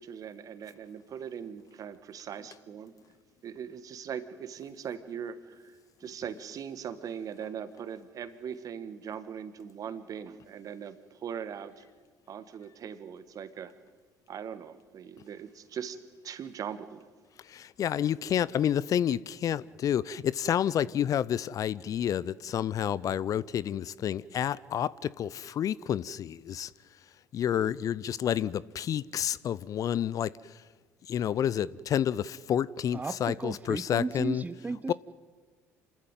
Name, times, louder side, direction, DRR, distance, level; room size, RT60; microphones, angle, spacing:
voice 1, 0.0-2.9 3.4-11.9 12.3-13.7 14.3-17.1, right 8 dB, 50° right, 1.6 m, -40 dB
voice 2, 17.5-26.7 27.3-30.3 31.1-34.4 34.9-35.0, left 9 dB, 45° left, 0.6 m, -29 dB
voice 3, 32.9-34.9, right 3 dB, 20° right, 0.8 m, -34 dB
27.5 x 13.5 x 9.1 m
hypercardioid pair, 55°, 8 cm